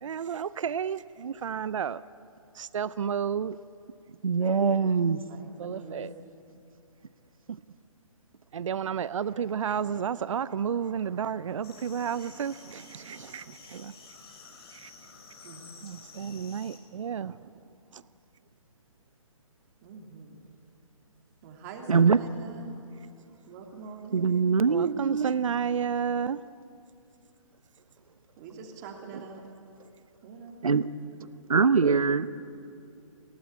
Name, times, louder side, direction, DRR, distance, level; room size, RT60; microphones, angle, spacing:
voice 1, 0.0-2.0 2.5-3.6 5.6-6.1 7.5-7.6 8.5-13.9 14.7-14.9 15.8-17.5 17.9-18.0 24.7-26.4, right 7 dB, 65° right, 0.6 m, -31 dB
voice 2, 4.2-5.2 21.9-22.2 24.1-25.3 30.6-30.9 31.2-32.3, right 5 dB, 85° right, 1.0 m, -23 dB
voice 3, 5.0-6.1 15.4-15.7 19.8-20.5 21.4-22.8 23.4-24.5 28.4-29.4 30.2-30.6, right 4 dB, 30° right, 2.8 m, -45 dB
sound 1, 11.6-16.8, left 4 dB, 50° left, 5.0 m, -51 dB
28.5 x 17.5 x 8.6 m
hypercardioid pair, 145°, 17 cm